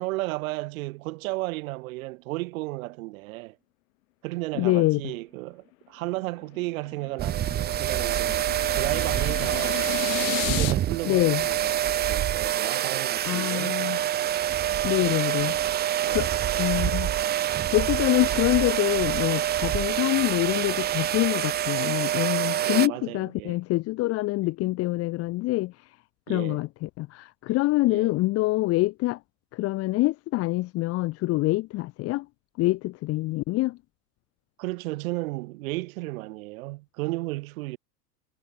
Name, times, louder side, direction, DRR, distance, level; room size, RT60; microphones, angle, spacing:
voice 1, 0.0-3.6 4.2-9.8 10.5-13.8 14.6-15.5 16.0-16.3 22.6-23.6 26.3-26.6 27.9-28.1 34.6-37.8, right 21 dB, 55° right, 2.9 m, -34 dB
voice 2, 4.5-5.0 11.0-11.4 13.2-14.0 14.8-15.6 16.1-16.3 16.6-17.2 17.7-26.0 26.3-29.2 29.5-32.3 32.6-33.8, left 19 dB, 30° left, 0.9 m, -25 dB
sound 1, 6.4-10.7, left 19 dB, 55° left, 2.4 m, -34 dB
sound 2, 7.2-22.9, right 11 dB, 20° right, 0.8 m, -26 dB
hypercardioid pair, 105°, 49 cm